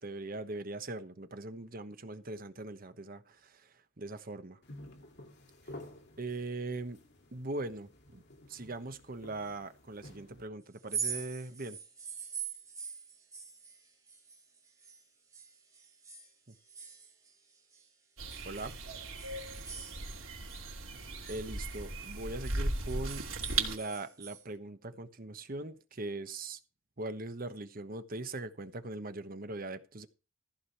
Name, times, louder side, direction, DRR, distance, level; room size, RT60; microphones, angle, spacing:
voice 1, 0.0-3.7 4.0-4.6 6.2-7.0 7.3-8.2 8.5-11.8 18.4-18.8 21.3-23.3 23.6-26.6 27.0-30.1, right 2 dB, 45° right, 1.1 m, -40 dB
sound 1, 4.6-10.5, left 1 dB, 55° left, 2.4 m, -52 dB
sound 2, 10.8-15.0 15.3-17.9 18.3-20.6 20.9-24.4, right 6 dB, 15° right, 2.9 m, -44 dB
sound 3, 18.2-23.8, right 3 dB, 90° right, 2.8 m, -37 dB
14.5 x 5.1 x 7.2 m
head